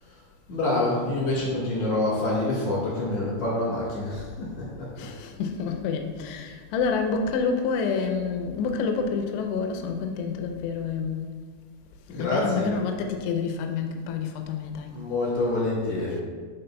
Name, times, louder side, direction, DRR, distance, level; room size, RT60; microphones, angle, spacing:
voice 1, 0.5-5.1 12.1-12.7 14.9-16.2, left 2 dB, 65° left, -7 dB, 1.9 m, -27 dB
voice 2, 5.0-11.3 12.1-14.9, left 5 dB, 85° left, 4 dB, 2.5 m, -28 dB
11.5 x 4.1 x 2.2 m, 1.5 s
omnidirectional pair, 5.5 m